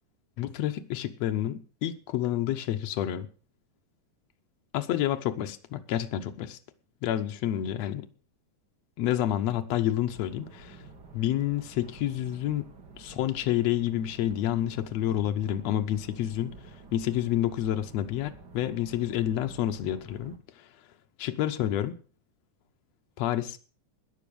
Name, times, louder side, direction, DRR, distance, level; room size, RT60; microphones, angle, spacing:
voice 1, 0.4-3.3 4.7-6.6 7.0-8.1 9.0-10.8 11.1-12.7 12.9-16.5 16.9-20.7 21.2-21.9 23.2-23.6, left 12 dB, 85° left, 1.5 m, -29 dB
sound 1, 10.1-20.4, right 4 dB, 45° right, 1.4 m, -50 dB
13.5 x 10.0 x 6.9 m
omnidirectional pair, 4.5 m